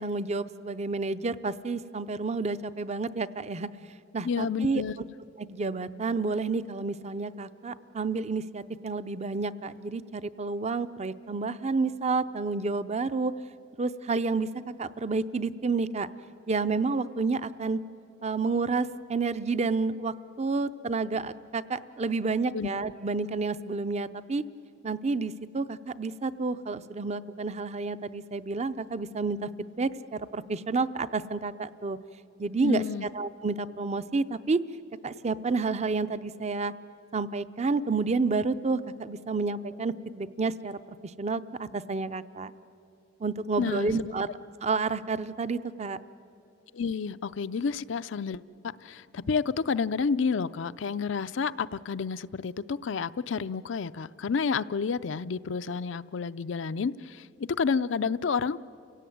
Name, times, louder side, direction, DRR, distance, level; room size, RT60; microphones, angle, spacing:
voice 1, 0.0-3.7 4.1-4.8 5.4-13.3 13.8-14.5 14.8-16.1 16.5-17.8 18.2-24.4 24.8-29.5 29.8-32.0 32.4-32.8 33.1-34.6 35.0-36.7 37.1-42.5 43.2-44.3 44.6-46.0, right 4 dB, 35° right, 14 dB, 0.6 m, -30 dB
voice 2, 4.2-4.9 22.5-22.7 32.6-33.1 43.6-44.1 46.7-48.4 48.8-58.6, left 5 dB, 80° left, 13 dB, 0.5 m, -30 dB
29.5 x 17.0 x 9.3 m, 2.7 s
head